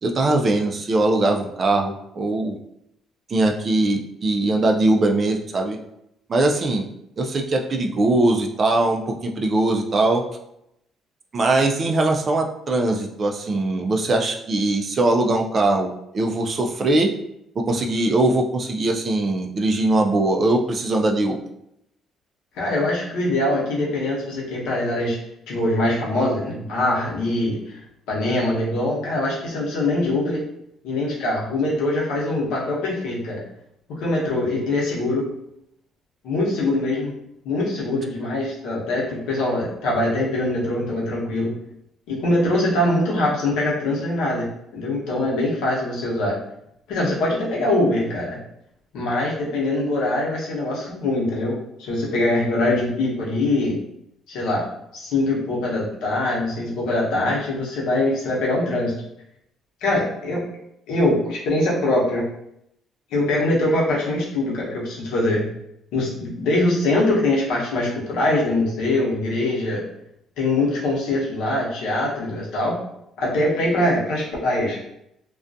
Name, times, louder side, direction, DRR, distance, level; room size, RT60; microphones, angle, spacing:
voice 1, 0.0-2.6 3.3-5.8 6.3-6.8 7.2-10.2 11.3-17.1 17.6-21.4, right 2 dB, 35° right, 3 dB, 0.3 m, -21 dB
voice 2, 22.6-25.2 25.5-27.8 28.1-30.4 30.8-33.4 33.9-35.3 36.2-37.1 37.4-41.5 42.1-46.4 46.9-48.4 48.9-53.8 54.3-54.7 54.9-58.9 59.8-60.5 60.9-62.3 63.1-65.4 65.9-69.8 70.4-72.8 73.2-74.9, left 1 dB, 85° left, -4 dB, 0.8 m, -23 dB
2.3 x 2.2 x 2.5 m, 0.79 s
cardioid pair, 120°, 0 cm